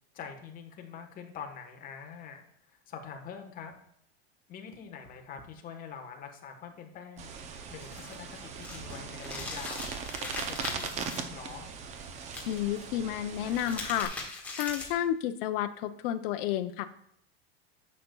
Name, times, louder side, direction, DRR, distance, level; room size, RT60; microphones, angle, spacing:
voice 1, 0.1-3.7 4.5-7.3 7.7-11.7, left 6 dB, 25° left, 4 dB, 1.1 m, -45 dB
sound 1, 7.2-14.1, right 6 dB, 20° right, 0.5 m, -40 dB
sound 2, 7.8-11.2 12.3-12.8 13.3-15.1, left 3 dB, 5° left, 1.4 m, -40 dB
voice 2, 12.5-16.9, left 11 dB, 60° left, 8 dB, 0.6 m, -31 dB
10.0 x 6.7 x 2.3 m, 0.71 s
supercardioid pair, 160°, 32 cm